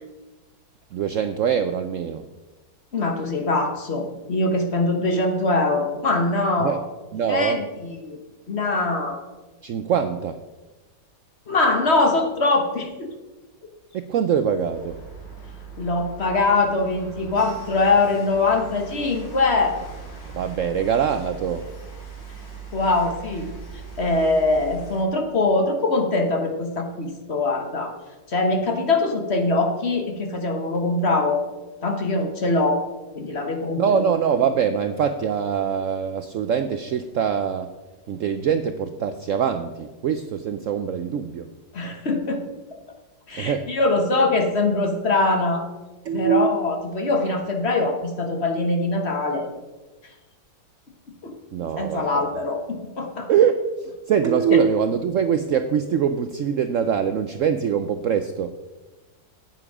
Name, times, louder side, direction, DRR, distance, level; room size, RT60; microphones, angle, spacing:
voice 1, 0.9-2.3 6.6-6.8 7.1-7.6 9.6-10.4 13.9-15.0 20.3-21.7 33.8-37.7 38.1-41.5 43.4-43.7 46.0-46.6 51.5-52.3 53.3-53.6 54.1-58.5, right 7 dB, 85° right, 9 dB, 0.7 m, -23 dB
voice 2, 2.9-6.8 7.3-8.2 8.5-9.2 11.5-13.1 15.8-19.8 22.7-23.5 24.0-28.0 28.3-31.4 31.8-32.8 33.1-33.8 41.7-42.4 43.3-45.6 46.1-49.5 51.2-51.4 51.8-53.3, left 2 dB, 40° left, 4 dB, 1.4 m, -22 dB
sound 1, 14.7-25.0, right 5 dB, 75° left, 3.2 m, -40 dB
9.7 x 9.1 x 4.9 m, 1.1 s
omnidirectional pair, 2.0 m